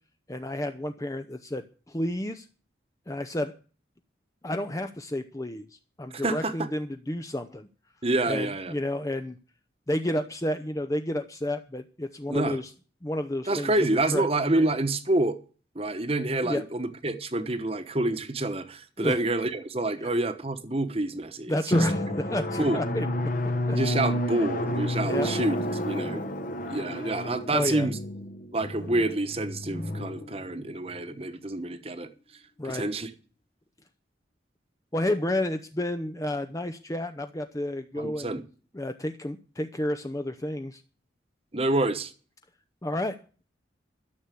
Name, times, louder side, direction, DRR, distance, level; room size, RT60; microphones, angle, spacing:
voice 1, 0.3-2.5 3.1-3.5 4.4-7.7 8.3-9.4 9.9-12.7 13.0-14.3 16.4-16.6 19.0-19.2 20.0-20.1 21.5-23.1 23.7-23.8 24.4-24.5 25.0-25.3 27.5-27.9 32.6-32.9 34.9-38.4 38.7-40.8 42.8-43.2, left 1 dB, 15° left, 0.6 m, -31 dB
voice 2, 6.1-6.5 8.0-8.7 12.3-12.6 13.5-15.4 15.7-21.9 22.6-22.8 23.7-25.6 25.8-26.3 26.7-28.0 28.5-32.1 32.6-33.1 38.0-38.4 41.5-42.1, right 2 dB, 30° right, 1.2 m, -27 dB
Drum, 21.7-31.0, left 1 dB, 45° left, 1.2 m, -30 dB
13.0 x 7.2 x 8.4 m
head